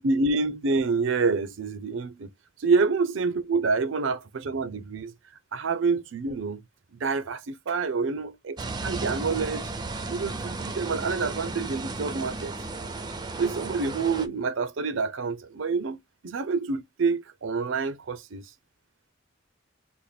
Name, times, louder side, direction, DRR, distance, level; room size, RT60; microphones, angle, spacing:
voice 1, 0.0-2.3 2.6-5.1 5.5-6.6 6.9-8.6 8.8-9.7 10.1-12.5 13.4-18.4, right 4 dB, 85° right, 0.5 m, -27 dB
sound 1, 8.6-14.3, right 3 dB, 20° right, 0.5 m, -34 dB
4.1 x 2.2 x 3.3 m
head